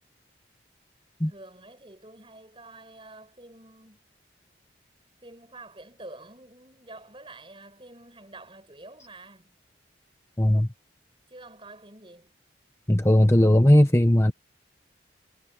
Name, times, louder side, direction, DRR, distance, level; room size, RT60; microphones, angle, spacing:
voice 1, 1.3-4.0 5.2-9.5 11.3-12.3, right 2 dB, 30° right, 8.0 m, -47 dB
voice 2, 10.4-10.7 12.9-14.3, left 1 dB, 15° left, 1.0 m, -18 dB
head